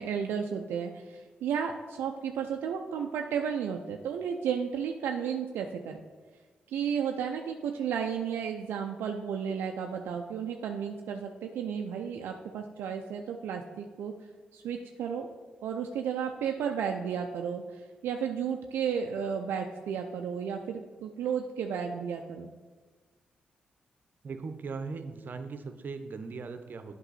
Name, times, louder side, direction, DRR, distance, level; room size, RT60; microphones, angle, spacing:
voice 1, 0.0-6.0 6.7-14.1 14.5-15.3 15.6-22.5, right 7 dB, 80° right, 3 dB, 0.4 m, -33 dB
voice 2, 24.2-27.0, right 4 dB, 55° right, 8 dB, 0.7 m, -39 dB
8.1 x 5.4 x 4.1 m, 1.4 s
supercardioid pair, 50°, 4 cm